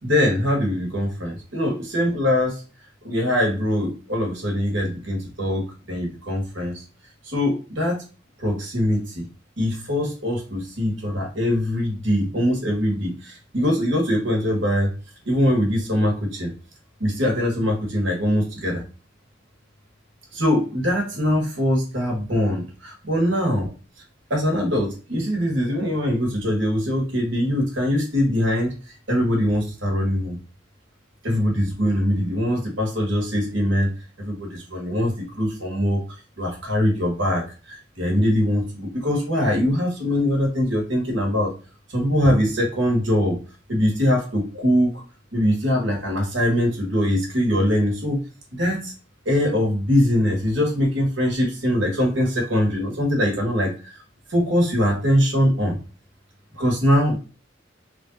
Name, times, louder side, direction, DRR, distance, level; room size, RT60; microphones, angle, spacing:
voice 1, 0.0-2.6 3.0-6.8 7.2-8.0 8.4-9.3 9.6-14.9 15.2-16.5 17.0-18.8 20.3-23.7 24.3-28.7 29.1-30.4 31.2-33.9 34.2-36.0 36.4-41.5 41.9-43.4 43.7-45.0 45.3-48.2 48.6-48.9 49.2-54.0 54.3-55.8 56.5-57.2, equal, 80° right, 0 dB, 1.5 m, -22 dB
3.5 x 2.6 x 3.8 m, 0.35 s
head